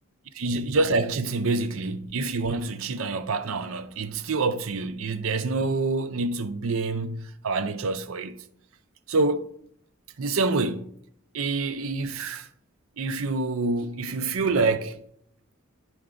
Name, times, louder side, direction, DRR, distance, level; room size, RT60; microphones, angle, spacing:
voice 1, 0.3-8.4 9.1-9.5 10.2-10.9 11.3-12.5 13.0-15.0, right 3 dB, 75° right, 0.6 m, -27 dB
10.5 x 4.6 x 3.8 m
head